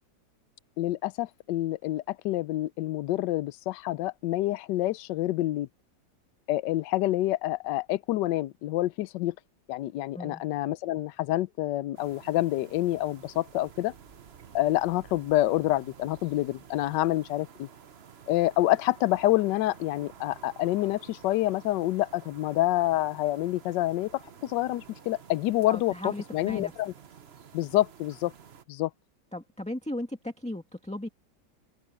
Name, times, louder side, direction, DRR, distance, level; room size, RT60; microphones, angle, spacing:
voice 1, 0.8-5.7 6.5-9.3 9.7-13.9 14.5-17.7 18.3-26.9 27.5-28.3 28.7-28.9, left 15 dB, 75° left, 1.2 m, -27 dB
sound 1, 11.9-28.6, right 7 dB, 45° right, 0.8 m, -51 dB
voice 2, 25.7-26.7 29.3-31.1, left 1 dB, 5° left, 1.7 m, -36 dB
omnidirectional pair, 2.1 m